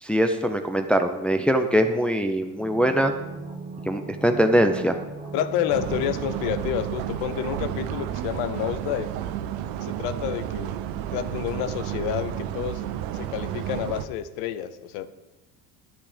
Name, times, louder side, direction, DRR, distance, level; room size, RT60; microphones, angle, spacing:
voice 1, 0.0-3.1 3.9-5.0, equal, 5° left, 5 dB, 0.7 m, -22 dB
sound 1, 2.6-8.3 8.5-8.6, right 4 dB, 15° right, 1.8 m, -39 dB
voice 2, 5.3-9.1 9.8-10.8 11.1-12.8 13.1-15.1, left 10 dB, 80° left, 12 dB, 0.8 m, -29 dB
sound 2, 5.7-14.1, right 11 dB, 80° right, 0.8 m, -31 dB
10.0 x 8.6 x 5.1 m, 1.1 s
supercardioid pair, 90°, 38 cm